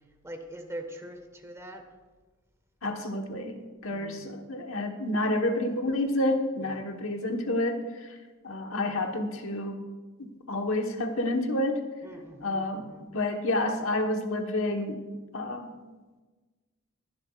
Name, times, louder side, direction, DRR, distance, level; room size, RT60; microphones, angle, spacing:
voice 1, 0.2-1.8 3.9-4.3 6.6-6.8 12.0-13.1, right 1 dB, 15° right, 4 dB, 1.4 m, -43 dB
voice 2, 2.8-8.2 8.4-9.8 10.2-11.9 12.4-15.0 15.3-15.7, left 1 dB, 70° left, 4 dB, 1.3 m, -29 dB
21.5 x 11.5 x 2.4 m, 1.3 s
head